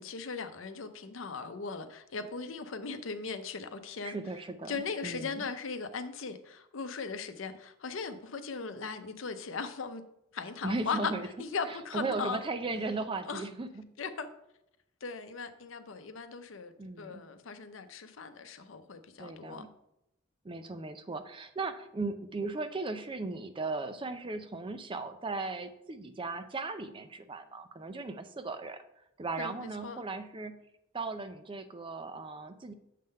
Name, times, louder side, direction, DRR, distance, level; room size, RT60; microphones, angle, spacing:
voice 1, 0.0-4.2 4.7-10.0 10.3-11.1 11.4-12.4 13.2-13.4 14.0-14.3 15.0-19.7 29.4-30.0, left 5 dB, 80° left, 0.7 m, -38 dB
voice 2, 4.0-4.8 5.0-5.4 10.6-11.3 11.9-13.9 16.8-17.2 19.2-19.7 20.4-28.8 29.2-30.6 30.9-32.7, right 3 dB, 25° right, 0.5 m, -37 dB
7.4 x 3.8 x 5.3 m
head